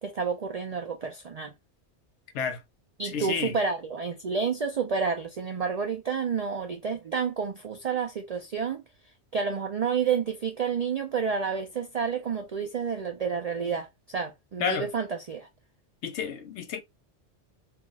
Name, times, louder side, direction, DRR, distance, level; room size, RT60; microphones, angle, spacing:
voice 1, 0.0-1.5 3.0-8.8 9.3-15.5, right 6 dB, 65° right, 0.3 m, -30 dB
voice 2, 3.1-3.5 14.6-14.9 16.0-16.8, left 6 dB, 75° left, 1.0 m, -30 dB
2.4 x 2.3 x 3.9 m
omnidirectional pair, 1.2 m